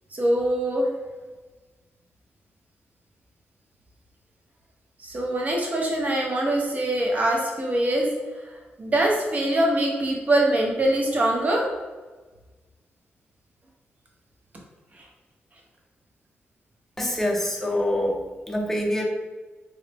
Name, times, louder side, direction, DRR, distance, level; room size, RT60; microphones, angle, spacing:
voice 1, 0.1-0.9 5.0-8.1 8.4-11.7 14.9-15.1, right 1 dB, 35° right, -1 dB, 0.7 m, -23 dB
voice 2, 17.0-18.2 18.5-19.0, left 1 dB, 5° left, 0 dB, 0.6 m, -25 dB
3.9 x 2.0 x 3.4 m, 1.3 s
wide cardioid pair, 110°, 4 cm